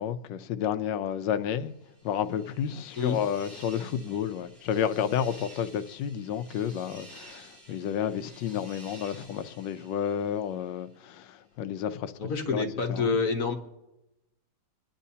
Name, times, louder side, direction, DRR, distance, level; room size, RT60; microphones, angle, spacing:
voice 1, 0.0-1.7 2.0-12.1 12.5-12.6 12.9-13.1, left 9 dB, 80° left, 1.3 m, -31 dB
sound 1, 1.7-10.8, right 1 dB, 30° right, 6.3 m, -52 dB
voice 2, 12.2-13.5, left 4 dB, 55° left, 1.3 m, -27 dB
26.0 x 10.0 x 2.8 m
omnidirectional pair, 2.0 m